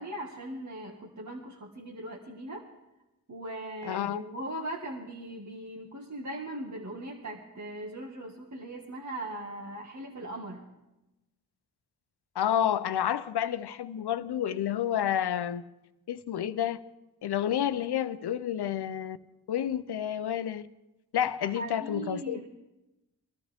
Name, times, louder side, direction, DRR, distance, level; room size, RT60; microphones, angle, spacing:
voice 1, 0.0-2.6 3.3-10.7 21.4-22.5, right 1 dB, 45° right, 1.5 m, -39 dB
voice 2, 3.8-4.2 12.4-15.6 16.1-16.8 17.2-19.2 19.5-20.6 21.1-22.4, left 10 dB, 85° left, 0.6 m, -29 dB
22.0 x 12.5 x 3.4 m
cardioid pair, 40°, 39 cm